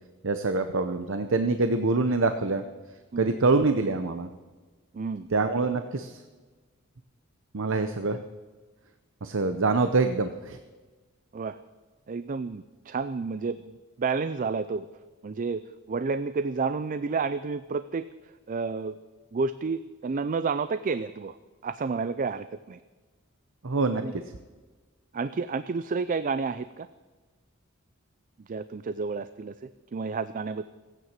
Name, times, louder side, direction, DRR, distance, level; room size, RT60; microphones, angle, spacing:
voice 1, 0.2-2.6 3.2-4.3 5.3-6.2 7.5-8.2 9.2-10.6 23.6-24.2, right 3 dB, 65° right, 8 dB, 0.8 m, -25 dB
voice 2, 4.9-5.3 8.1-8.2 11.3-11.6 12.1-14.9 15.2-15.6 15.9-18.1 18.5-19.0 19.3-21.4 21.6-22.8 24.0-24.1 25.1-26.9 28.5-30.6, right 4 dB, 40° right, 13 dB, 0.4 m, -30 dB
16.0 x 9.3 x 7.4 m, 1.3 s
head